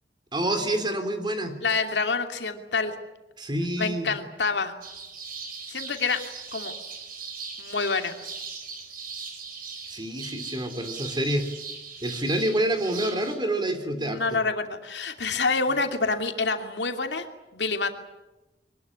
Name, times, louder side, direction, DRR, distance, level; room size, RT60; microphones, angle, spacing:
voice 1, 0.3-1.6 3.4-4.1 9.9-11.4 12.0-14.4, right 1 dB, 25° right, 7 dB, 3.3 m, -27 dB
voice 2, 1.6-2.9 3.8-4.7 5.7-6.2 6.5-6.7 7.6-8.2 14.0-17.3 17.5-17.9, left 4 dB, 75° left, 5 dB, 2.6 m, -27 dB
sound 1, 4.8-13.4, right 5 dB, 55° right, 5.2 m, -39 dB
24.0 x 20.0 x 9.8 m, 1.0 s
head